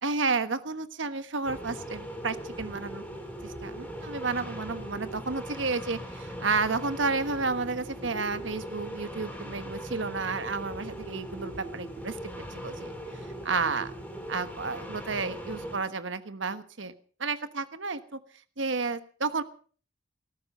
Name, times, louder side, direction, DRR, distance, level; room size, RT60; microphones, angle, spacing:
voice 1, 0.0-3.0 3.4-12.2 12.5-12.9 13.4-13.9 14.3-16.9 17.2-18.2 18.6-19.4, right 4 dB, 85° right, 11 dB, 1.3 m, -31 dB
sound 1, 1.4-15.8, equal, 10° left, 4.2 m, -40 dB
17.5 x 14.5 x 5.5 m, 0.43 s
head